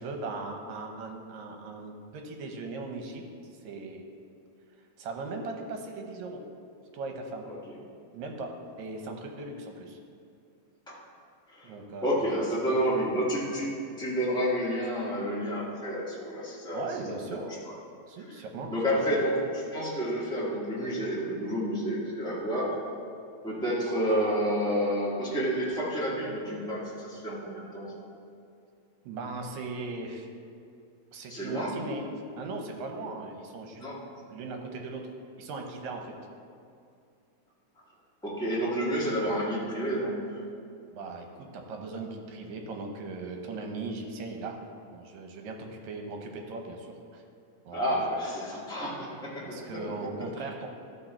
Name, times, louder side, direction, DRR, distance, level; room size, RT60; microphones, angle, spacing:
voice 1, 0.0-3.2 3.6-4.0 5.0-6.4 6.9-7.5 8.1-8.5 8.8-10.0 11.6-12.3 12.6-13.1 16.7-17.5 18.1-19.0 29.1-30.3 31.1-32.0 32.4-33.8 34.1-35.0 35.4-36.2 40.9-44.6 44.9-47.2 47.7-48.0 49.4-50.7, right 3 dB, 75° right, 3 dB, 2.2 m, -38 dB
voice 2, 12.0-16.9 17.3-17.7 18.7-22.8 23.4-27.9 31.3-31.7 33.8-34.0 38.2-40.2 47.7-49.6 50.2-50.5, equal, 5° left, -8 dB, 0.4 m, -30 dB
13.5 x 4.5 x 4.4 m, 2.4 s
omnidirectional pair, 3.4 m